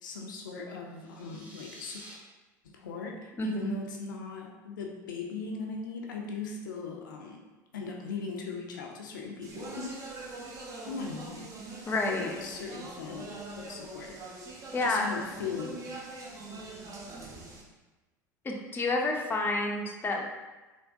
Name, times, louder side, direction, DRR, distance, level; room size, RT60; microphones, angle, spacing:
voice 1, 0.0-2.0 2.6-7.4 7.7-9.9 10.9-13.3 13.6-14.2 14.8-15.8, left 4 dB, 80° left, 0 dB, 0.4 m, -39 dB
sound 1, 0.9-2.1, equal, 15° right, 1.0 m, -50 dB
voice 2, 3.4-3.7 11.9-12.4 14.7-15.0 18.4-20.3, left 2 dB, 20° left, 1 dB, 0.5 m, -29 dB
Speech, 9.4-17.6, right 3 dB, 35° right, 0.6 m, -43 dB
3.4 x 2.2 x 2.6 m, 1.2 s
hypercardioid pair, 75°, 10 cm